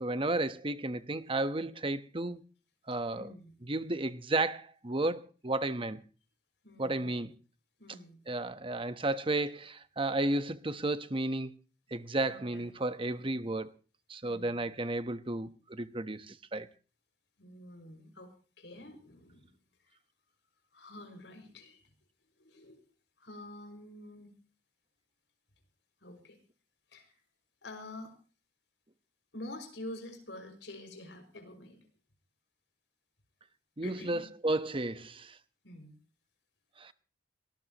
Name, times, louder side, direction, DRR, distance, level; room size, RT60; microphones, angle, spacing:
voice 1, 0.0-2.4 2.9-3.3 3.7-6.0 6.8-7.3 8.3-11.5 11.9-13.7 14.1-16.7 33.8-35.4 36.8-36.9, right 2 dB, 30° right, 1.1 m, -33 dB
voice 2, 2.9-3.5 6.6-7.1 7.8-8.2 12.1-12.7 13.1-13.5 14.2-14.6 17.4-19.5 19.8-20.0 20.7-21.8 22.4-22.8 23.2-24.4 26.0-26.4 26.9-27.2 27.6-28.2 29.3-31.9 33.8-34.3 35.6-36.0, left 1 dB, 85° left, 6.1 m, -48 dB
23.5 x 19.5 x 3.0 m
head